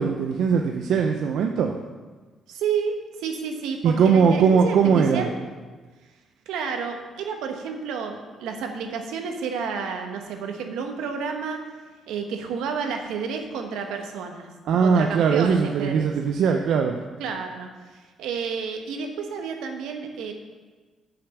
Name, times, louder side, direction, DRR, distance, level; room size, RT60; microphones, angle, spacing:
voice 1, 0.0-1.7 3.8-5.3 14.7-17.0, right 6 dB, 75° right, 3 dB, 0.5 m, -20 dB
voice 2, 2.5-5.4 6.5-11.6 12.1-14.5 14.8-16.1 17.2-20.3, right 6 dB, 90° right, 4 dB, 1.1 m, -30 dB
6.6 x 5.9 x 7.0 m, 1.3 s
cardioid pair, 90°, 0 cm